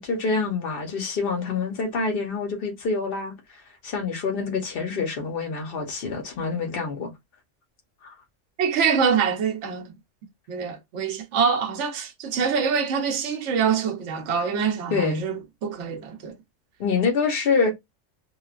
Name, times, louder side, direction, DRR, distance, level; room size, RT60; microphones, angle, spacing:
voice 1, 0.0-3.4 3.8-7.1 8.0-8.1 14.9-15.2 16.8-17.7, left 4 dB, 50° left, 1.0 m, -26 dB
voice 2, 8.6-9.9 10.5-16.3, right 6 dB, 70° right, 1.0 m, -25 dB
3.1 x 2.3 x 2.4 m
omnidirectional pair, 1.3 m